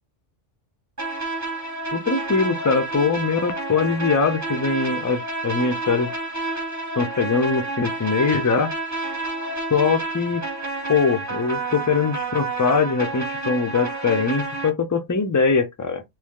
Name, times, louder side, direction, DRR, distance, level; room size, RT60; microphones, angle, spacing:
sound 1, 1.0-14.7, right 2 dB, 15° right, 1.0 m, -29 dB
voice 1, 1.9-6.1 7.0-8.7 9.7-10.4 10.9-16.0, left 5 dB, 25° left, 0.4 m, -22 dB
3.1 x 2.6 x 3.6 m
omnidirectional pair, 1.3 m